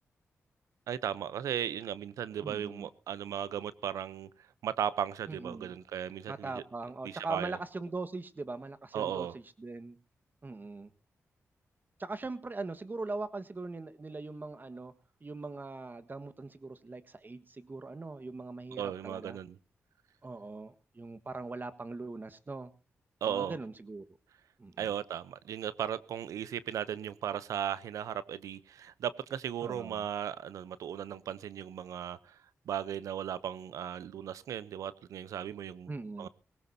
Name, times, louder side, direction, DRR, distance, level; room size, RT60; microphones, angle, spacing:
voice 1, 0.9-4.3 4.6-6.6 7.0-7.6 8.9-9.3 18.7-19.6 23.2-23.5 24.8-32.4 32.7-35.9 36.2-36.3, right 9 dB, 90° right, 17 dB, 0.7 m, -36 dB
voice 2, 2.4-2.9 5.3-5.7 6.3-10.0 10.4-10.9 12.0-14.9 15.2-19.4 20.2-22.7 23.3-24.0 24.6-24.9 29.6-30.1 35.9-36.3, right 3 dB, 35° right, 12 dB, 1.5 m, -41 dB
19.5 x 17.5 x 2.7 m, 0.32 s
cardioid pair, 55°, 5 cm